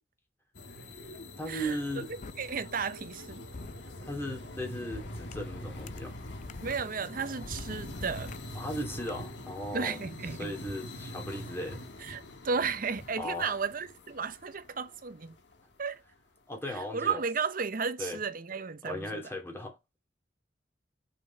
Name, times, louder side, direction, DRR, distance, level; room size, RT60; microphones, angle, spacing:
sound 1, 0.5-15.8, left 1 dB, 80° left, 1.4 m, -44 dB
voice 1, 1.4-2.1 4.0-6.2 8.5-10.0 10.4-11.8 13.2-13.6 16.5-17.2 18.0-18.2 18.8-19.8, equal, 15° left, 2.5 m, -37 dB
sound 2, 2.2-2.3 3.5-3.7 4.9-6.7 7.4-9.2, left 3 dB, 45° left, 0.5 m, -45 dB
voice 2, 2.4-3.5 6.6-8.3 9.7-10.5 12.1-15.4 15.8-16.0 16.7-19.2, right 5 dB, 50° right, 0.8 m, -34 dB
6.1 x 5.2 x 4.2 m
head